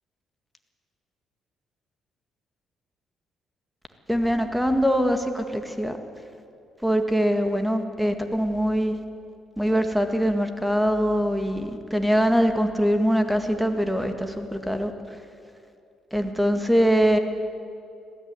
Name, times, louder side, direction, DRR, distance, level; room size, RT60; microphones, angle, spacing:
voice 1, 4.1-6.0 6.8-9.0 9.6-14.9 16.1-17.2, equal, 5° right, 6 dB, 1.9 m, -23 dB
20.0 x 14.5 x 9.8 m, 2.6 s
cardioid pair, 90°, 0 cm